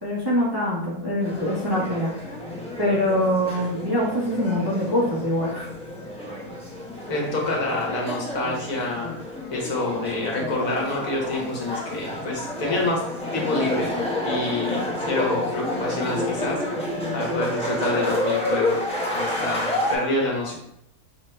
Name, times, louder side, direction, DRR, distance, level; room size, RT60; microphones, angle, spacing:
voice 1, 0.0-2.1 2.8-5.7, left 1 dB, 15° right, -7 dB, 1.0 m, -24 dB
sound 1, 1.2-20.0, left 1 dB, 5° left, 1.1 m, -29 dB
voice 2, 7.1-9.2 9.5-13.0 13.3-13.9 14.2-18.8 19.1-20.6, left 2 dB, 60° left, -2 dB, 1.4 m, -27 dB
5.6 x 3.0 x 3.2 m, 0.77 s
omnidirectional pair, 1.7 m